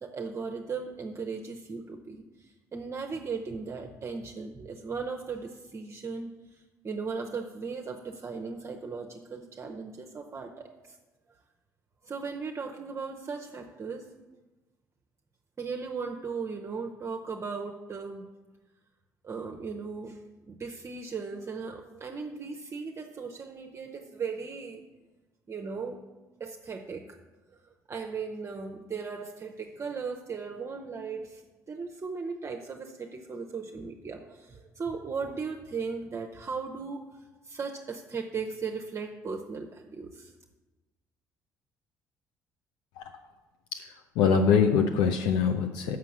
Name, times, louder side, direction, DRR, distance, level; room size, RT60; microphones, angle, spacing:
voice 1, 0.0-11.0 12.0-14.1 15.6-18.3 19.2-20.2 20.5-24.9 25.5-26.0 26.4-27.2 27.9-31.4 31.7-37.1 37.4-40.3, right 5 dB, 30° right, 2 dB, 0.7 m, -37 dB
voice 2, 43.7-46.0, left 6 dB, 65° left, 5 dB, 0.5 m, -24 dB
6.2 x 5.9 x 7.1 m, 1.2 s
figure-of-eight pair, 50°, 9 cm